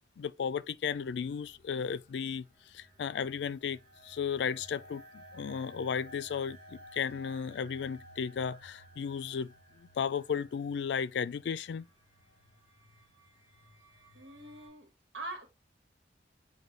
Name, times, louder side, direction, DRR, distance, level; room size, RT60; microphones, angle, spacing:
voice 1, 0.2-9.5 9.8-11.9, left 7 dB, 75° left, 0.3 m, -34 dB
sound 1, 0.8-14.7, equal, 50° right, 2.0 m, -56 dB
voice 2, 14.1-14.9 15.1-15.5, right 2 dB, 85° right, 1.3 m, -43 dB
6.7 x 2.3 x 3.1 m
head